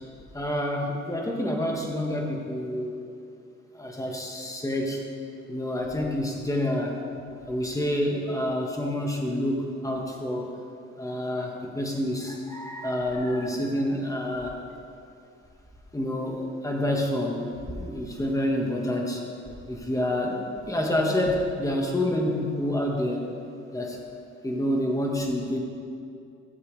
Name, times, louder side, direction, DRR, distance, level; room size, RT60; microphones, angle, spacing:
voice 1, 0.3-3.0 3.7-5.0 5.5-7.0 7.5-10.5 11.0-14.6 15.9-17.5 17.8-19.2 19.7-23.3 23.7-24.0 24.4-25.6, left 1 dB, 10° left, 0 dB, 1.6 m, -28 dB
16.5 x 7.4 x 3.4 m, 2.6 s
cardioid pair, 90°, 30 cm